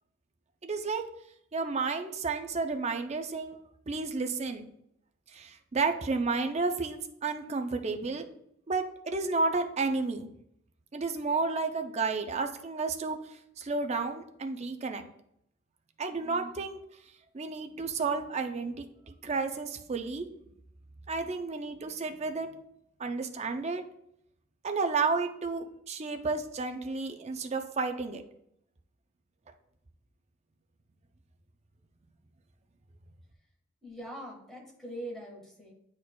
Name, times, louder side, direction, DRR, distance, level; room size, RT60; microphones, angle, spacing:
voice 1, 0.6-1.0 1.5-3.6 3.9-4.7 5.3-8.2 8.7-10.3 10.9-13.2 13.6-15.0 16.0-16.8 17.3-20.3 21.1-22.5 23.0-23.8 24.6-28.2, right 4 dB, 30° right, 6 dB, 0.5 m, -31 dB
voice 2, 33.8-35.7, right 1 dB, ahead, -2 dB, 1.6 m, -42 dB
9.8 x 4.4 x 2.3 m, 0.74 s
head